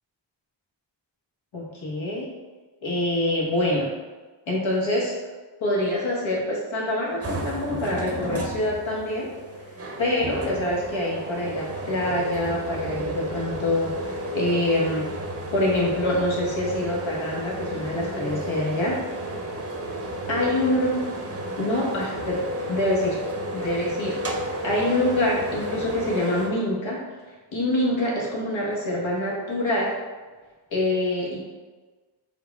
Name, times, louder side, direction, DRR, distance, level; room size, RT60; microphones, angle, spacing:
voice 1, 1.5-2.3 2.8-3.9 4.5-5.2 5.6-9.3 10.0-15.1 15.5-19.0 20.3-21.0 21.6-23.2 23.5-27.0 27.5-29.9 30.7-31.4, left 1 dB, 70° left, -4 dB, 1.5 m, -25 dB
sound 1, 7.2-26.5, right 1 dB, 30° right, 0.8 m, -32 dB
4.9 x 2.3 x 4.1 m, 1.3 s
cardioid pair, 45°, 48 cm